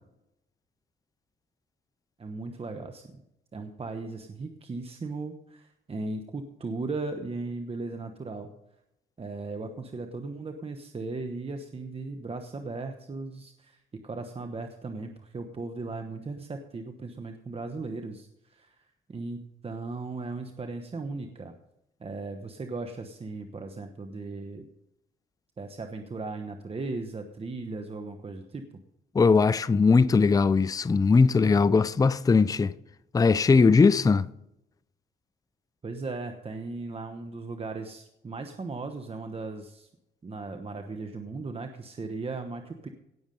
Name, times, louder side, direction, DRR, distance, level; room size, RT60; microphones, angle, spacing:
voice 1, 2.2-3.2 3.5-8.5 9.2-21.5 22.0-24.7 25.6-28.7 35.8-39.9 40.2-42.9, right 3 dB, 30° right, 1.1 m, -37 dB
voice 2, 29.1-32.7 33.1-34.3, left 4 dB, 20° left, 0.5 m, -20 dB
17.5 x 7.1 x 5.3 m
cardioid pair, 90°, 20 cm